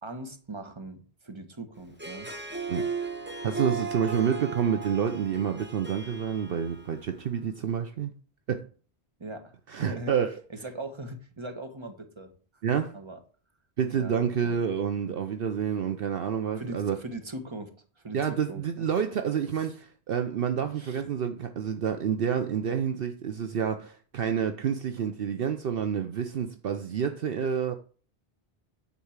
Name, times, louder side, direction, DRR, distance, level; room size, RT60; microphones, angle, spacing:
voice 1, 0.0-1.0 1.2-2.3 9.2-10.1 10.6-12.3 12.9-13.2 13.9-14.1 14.4-14.6 16.6-17.7 18.0-18.2 18.5-18.8 19.5-19.7 20.8-21.0, right 2 dB, 25° right, 1.4 m, -40 dB
Harp, 1.9-7.3, right 5 dB, 10° right, 1.0 m, -36 dB
voice 2, 3.4-8.1 8.5-8.6 9.7-10.4 12.6-12.9 13.8-17.0 18.1-27.7, right 7 dB, 65° right, 0.9 m, -28 dB
10.0 x 4.2 x 7.2 m
omnidirectional pair, 1.0 m